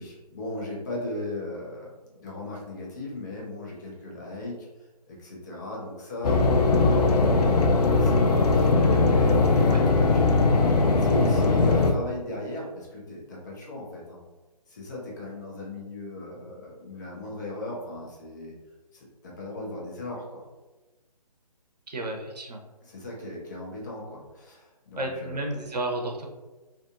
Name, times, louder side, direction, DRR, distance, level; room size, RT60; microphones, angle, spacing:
voice 1, 0.0-4.7 5.1-7.5 8.0-8.7 9.0-10.6 11.0-14.2 14.7-18.5 18.9-20.4 22.8-25.6, left 1 dB, 30° left, -3 dB, 0.6 m, -37 dB
sound 1, 6.2-11.9, left 3 dB, 70° left, 0.4 m, -20 dB
voice 2, 21.9-22.6 25.0-26.3, right 1 dB, 80° right, 1 dB, 0.7 m, -32 dB
2.6 x 2.5 x 2.4 m, 1.2 s
figure-of-eight pair, 145°, 21 cm